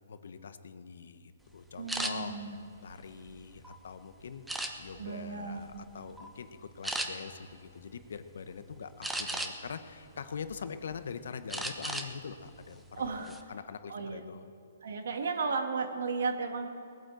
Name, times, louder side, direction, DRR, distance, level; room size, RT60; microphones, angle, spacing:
voice 1, 0.1-2.3 2.8-4.4 4.8-14.4, left 6 dB, 70° left, 11 dB, 1.0 m, -43 dB
voice 2, 1.8-2.6 4.9-5.8 13.0-13.3 13.9-14.2 14.8-16.7, right 4 dB, 75° right, 5 dB, 2.1 m, -34 dB
sound 1, 1.9-2.1 2.8-3.7 4.5-5.1 5.6-5.8 6.2-6.3 6.8-7.1 9.0-9.7 10.2-11.0 11.5-12.1 12.4-12.6 13.0-13.4, right 1 dB, 5° right, 0.9 m, -35 dB
19.5 x 9.5 x 7.7 m, 2.6 s
hypercardioid pair, 155°, 0 cm